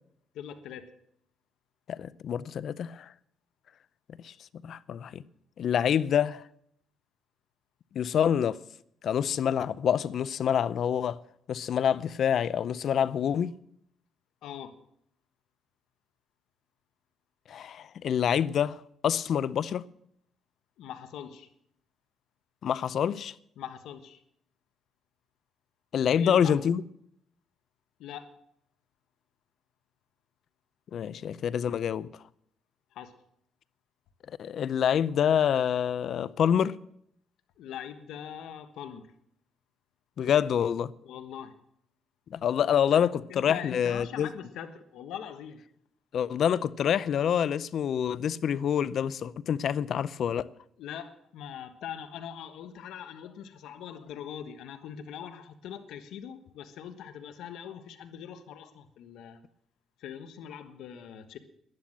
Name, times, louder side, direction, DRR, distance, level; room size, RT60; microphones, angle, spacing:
voice 1, 0.3-0.9 14.4-14.7 20.8-21.5 23.6-24.2 26.1-26.5 28.0-28.3 32.9-33.1 37.6-39.0 41.0-41.6 42.9-43.0 43.3-45.6 50.8-59.4 60.0-61.4, left 9 dB, 85° left, 1.3 m, -42 dB
voice 2, 1.9-3.1 4.2-4.3 4.6-5.2 5.6-6.4 7.9-8.6 9.0-11.2 11.5-13.5 17.5-19.8 22.6-23.3 25.9-26.8 30.9-32.1 34.4-36.7 40.2-40.9 42.3-44.3 46.1-50.5, left 8 dB, 65° left, 0.5 m, -27 dB
11.5 x 11.0 x 7.5 m
cardioid pair, 90°, 0 cm